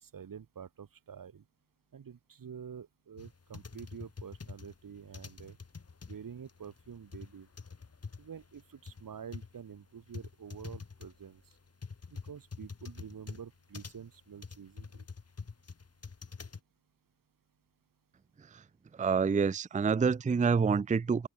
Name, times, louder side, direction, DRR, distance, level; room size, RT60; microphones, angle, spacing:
voice 1, 0.0-1.4 1.9-5.6 6.1-7.5 8.2-11.4 12.3-15.0, right 7 dB, 65° right, 2.5 m, -48 dB
sound 1, 3.2-16.6, left 5 dB, 40° left, 3.0 m, -46 dB
voice 2, 19.0-21.3, right 5 dB, 20° right, 0.5 m, -27 dB
cardioid pair, 80°, 36 cm